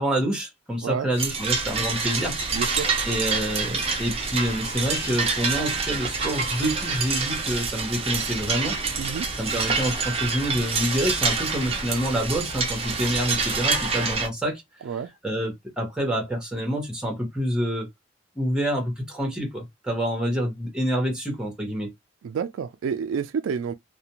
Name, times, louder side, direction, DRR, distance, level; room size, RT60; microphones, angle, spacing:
voice 1, 0.0-2.4 3.0-8.8 9.4-14.6 15.2-17.9 18.4-21.9, equal, 5° right, 1.0 m, -27 dB
sound 1, 1.2-14.3, right 4 dB, 30° right, 0.5 m, -27 dB
voice 2, 2.5-2.9 9.0-9.3 14.8-15.1 22.2-23.7, right 6 dB, 80° right, 0.3 m, -29 dB
2.4 x 2.2 x 2.9 m
head